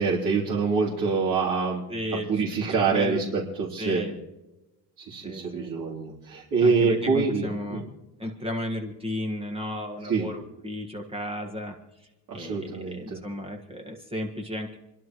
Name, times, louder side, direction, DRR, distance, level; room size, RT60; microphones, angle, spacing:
voice 1, 0.0-1.8 2.3-4.0 5.0-7.8 10.1-10.2 12.3-13.2, right 4 dB, 50° right, -4 dB, 3.4 m, -25 dB
voice 2, 1.9-2.3 2.8-3.3 3.8-4.2 5.2-5.7 6.6-7.9 8.2-11.7 12.3-14.8, left 1 dB, 15° right, 3 dB, 1.7 m, -34 dB
29.0 x 11.5 x 3.1 m, 1.0 s
cardioid pair, 160°, 40 cm